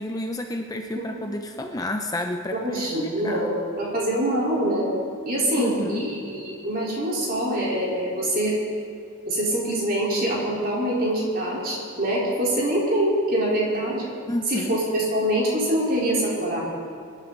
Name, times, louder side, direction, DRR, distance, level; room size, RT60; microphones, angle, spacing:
voice 1, 0.0-3.5 5.6-6.1 14.3-14.8, left 1 dB, 15° left, 4 dB, 0.6 m, -30 dB
voice 2, 2.6-4.9 5.2-8.6 9.3-14.0 14.5-16.6, right 1 dB, 45° right, -5 dB, 4.1 m, -24 dB
24.5 x 11.5 x 4.0 m, 2.4 s
head